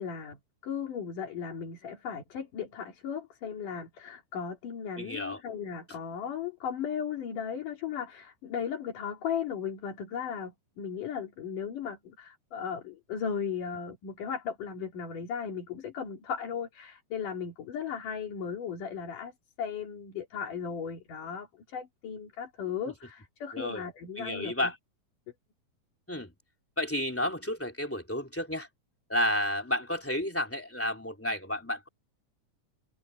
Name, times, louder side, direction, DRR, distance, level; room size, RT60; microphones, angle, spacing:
voice 1, 0.0-19.3 19.6-24.7, left 7 dB, 80° left, 4.5 m, -36 dB
voice 2, 5.0-5.4 5.9-6.0 23.5-23.8 24.2-24.7 26.1-26.3 26.8-28.7 29.1-31.9, left 1 dB, 5° left, 2.9 m, -31 dB
omnidirectional pair, 3.7 m